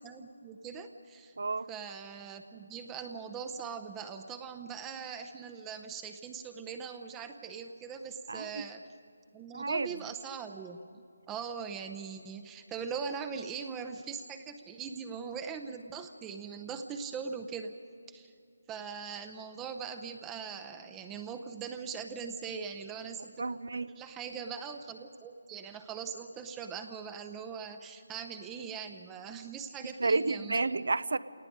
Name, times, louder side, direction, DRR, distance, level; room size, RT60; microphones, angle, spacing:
voice 1, 0.0-1.3 1.7-8.9 9.3-10.8 11.3-17.7 18.1-18.3 18.7-23.4 23.7-30.6, right 6 dB, 15° right, 7 dB, 0.6 m, -41 dB
voice 2, 1.4-1.7 8.3-8.7 9.5-9.9 23.4-24.0 29.8-31.2, right 3 dB, 70° right, 17 dB, 0.6 m, -31 dB
27.5 x 18.5 x 5.2 m, 2.5 s
figure-of-eight pair, 155°, 0 cm